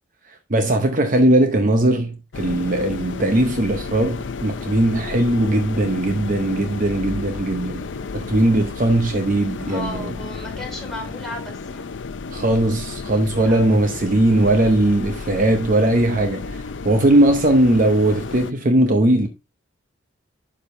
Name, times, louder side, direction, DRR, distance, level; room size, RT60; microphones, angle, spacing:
voice 1, 0.5-7.8 8.1-10.0 12.3-19.3, right 1 dB, 40° right, 0.8 m, -19 dB
sound 1, 2.3-18.5, left 4 dB, 65° left, 0.5 m, -32 dB
voice 2, 9.6-11.9 13.4-13.8 17.1-17.4, left 1 dB, ahead, 3.4 m, -35 dB
11.5 x 5.0 x 2.6 m
head